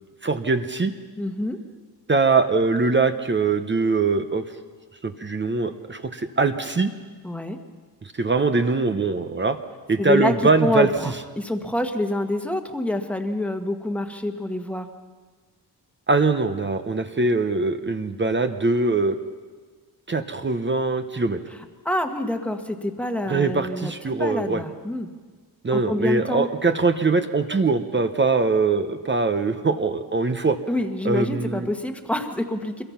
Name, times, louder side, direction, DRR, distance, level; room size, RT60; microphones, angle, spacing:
voice 1, 0.2-0.9 2.1-4.4 5.0-6.9 8.0-9.6 9.9-10.9 16.1-19.2 20.1-21.4 23.3-24.6 25.6-30.6 31.0-31.7, right 3 dB, 25° right, 8 dB, 0.9 m, -22 dB
voice 2, 1.2-1.6 7.2-7.6 10.0-10.3 10.6-14.9 21.8-25.1 25.7-26.5 30.7-32.8, left 1 dB, 5° left, 5 dB, 1.4 m, -26 dB
26.5 x 22.0 x 5.8 m, 1.5 s
wide cardioid pair, 160°, 41 cm